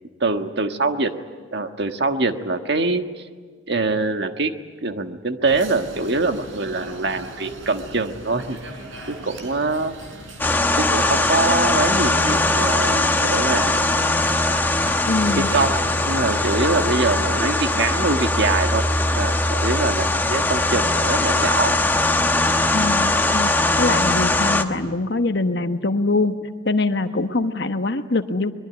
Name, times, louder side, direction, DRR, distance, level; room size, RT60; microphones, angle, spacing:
voice 1, 0.2-1.1 1.5-3.0 3.7-4.5 4.8-8.6 9.1-9.9 10.8-13.9 15.5-15.8 16.0-18.8 19.1-21.7 24.8-24.9, right 3 dB, 60° right, 6 dB, 1.5 m, -23 dB
sound 1, 5.4-17.2, right 1 dB, 85° right, 4.9 m, -37 dB
sound 2, 10.4-24.6, left 2 dB, 10° left, 1.2 m, -20 dB
voice 2, 15.1-15.5 22.7-28.5, left 2 dB, 60° left, 8 dB, 1.2 m, -23 dB
23.5 x 22.5 x 9.6 m, 1.5 s
head